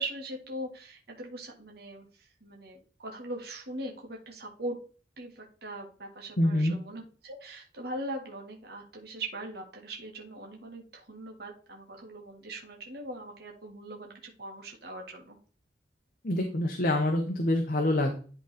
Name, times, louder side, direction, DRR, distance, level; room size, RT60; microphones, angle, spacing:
voice 1, 0.0-4.8 5.2-15.4, right 1 dB, 60° right, 0 dB, 1.8 m, -41 dB
voice 2, 6.4-6.8 16.2-18.2, left 1 dB, 50° left, 3 dB, 1.1 m, -26 dB
11.0 x 3.9 x 4.3 m, 0.39 s
head